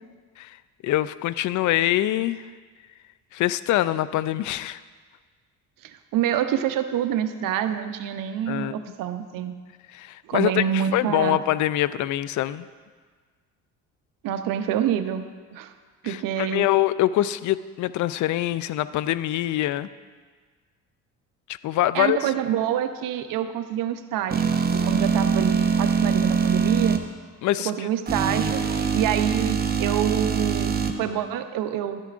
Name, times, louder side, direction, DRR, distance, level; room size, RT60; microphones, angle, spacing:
voice 1, 0.8-2.4 3.3-4.8 8.5-8.8 9.9-12.7 16.0-19.9 21.6-22.2 27.4-27.7, left 14 dB, 60° left, 16 dB, 0.4 m, -24 dB
voice 2, 5.8-9.5 10.2-11.4 14.2-15.7 16.0-16.7 21.9-27.0 27.6-28.6 28.9-32.0, right 10 dB, 70° right, 8 dB, 0.8 m, -27 dB
sound 1, 24.3-27.0 28.1-30.9, right 6 dB, 25° right, 0.8 m, -23 dB
12.5 x 10.5 x 2.5 m, 1.5 s
supercardioid pair, 75°, 34 cm